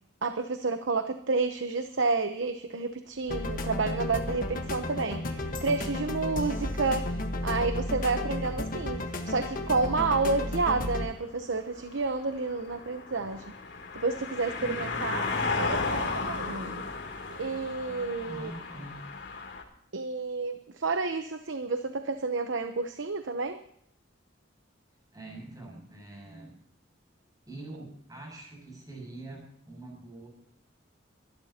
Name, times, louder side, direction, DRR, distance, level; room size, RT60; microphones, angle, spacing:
voice 1, 0.2-7.0 7.4-13.4 13.9-16.8 17.4-18.5 19.9-23.6, right 3 dB, 80° right, 8 dB, 0.9 m, -30 dB
sound 1, 3.3-11.1, left 1 dB, 45° left, 1.4 m, -33 dB
sound 2, 6.5-6.7 9.2-9.3 9.5-19.6, left 4 dB, 60° left, 2.9 m, -35 dB
voice 2, 6.6-7.2 14.6-15.2 18.3-19.0 25.1-26.6 27.5-30.3, right 2 dB, 20° right, 0 dB, 6.8 m, -44 dB
24.0 x 12.5 x 2.9 m, 0.70 s
head